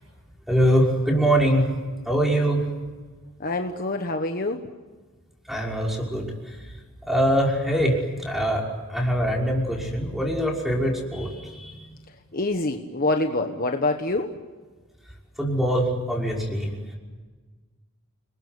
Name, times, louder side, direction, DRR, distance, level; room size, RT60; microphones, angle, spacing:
voice 1, 0.5-1.6 2.1-2.6 5.5-6.6 7.1-11.8 15.4-17.0, equal, ahead, -1 dB, 5.8 m, -23 dB
voice 2, 3.4-4.7 12.3-14.3, left 2 dB, 40° left, 5 dB, 1.4 m, -26 dB
30.0 x 21.5 x 8.3 m, 1.4 s
head